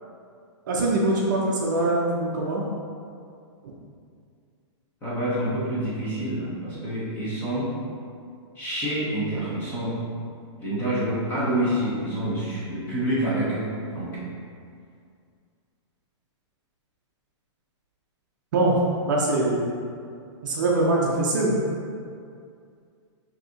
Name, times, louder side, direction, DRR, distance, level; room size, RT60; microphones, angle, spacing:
voice 1, 0.7-2.6 18.5-18.8 19.1-19.7 20.4-21.6, right 2 dB, 40° right, -3 dB, 0.5 m, -23 dB
voice 2, 5.0-7.7 8.6-10.0 10.6-14.2, right 1 dB, 10° left, -9 dB, 0.8 m, -27 dB
5.9 x 2.7 x 2.7 m, 2.3 s
hypercardioid pair, 175°, 15 cm